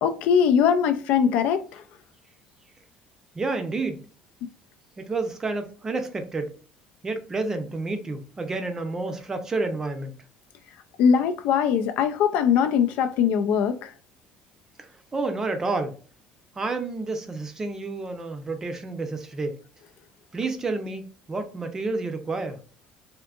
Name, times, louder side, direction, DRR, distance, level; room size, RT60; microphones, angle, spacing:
voice 1, 0.0-1.6 11.0-13.8, left 7 dB, 75° left, 0.4 m, -21 dB
voice 2, 3.4-4.0 5.0-6.5 7.0-10.1 15.1-16.0 16.6-19.6 20.3-22.6, right 3 dB, 20° right, 0.5 m, -29 dB
3.5 x 2.6 x 2.4 m
cardioid pair, 135°, 3 cm